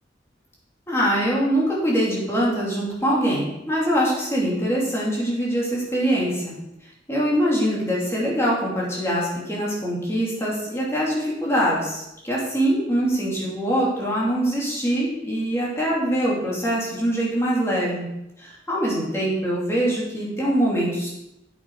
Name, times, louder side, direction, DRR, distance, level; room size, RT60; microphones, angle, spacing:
voice 1, 0.9-6.6 7.1-18.1 18.4-21.1, equal, 15° left, -5 dB, 3.0 m, -23 dB
9.0 x 8.5 x 4.9 m, 0.86 s
head